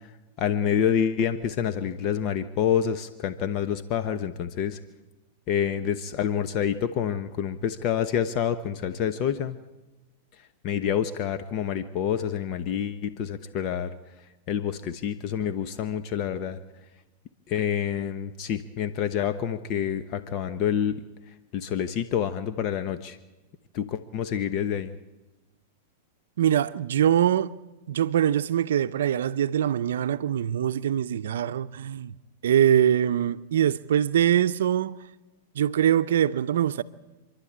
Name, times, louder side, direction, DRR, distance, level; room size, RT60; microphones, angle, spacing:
voice 1, 0.4-4.8 5.5-9.6 10.6-13.9 14.5-16.6 17.5-21.0 21.5-23.2 23.7-24.9, left 8 dB, 45° left, 1.0 m, -27 dB
voice 2, 26.4-27.5 27.9-32.1 32.4-35.0 35.6-36.8, right 10 dB, 80° right, 0.6 m, -23 dB
28.0 x 11.5 x 8.7 m
hypercardioid pair, 130°, 0 cm